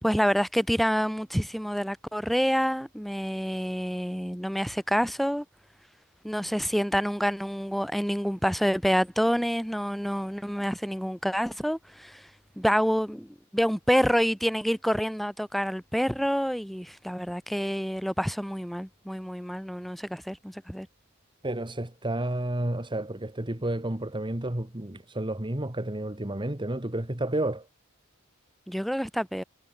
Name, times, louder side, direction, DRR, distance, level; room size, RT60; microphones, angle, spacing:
voice 1, 0.0-5.4 6.2-12.2 12.6-20.9 28.7-29.4, equal, ahead, 3.3 m, -27 dB
voice 2, 21.4-27.7, right 1 dB, 20° right, 1.8 m, -31 dB
head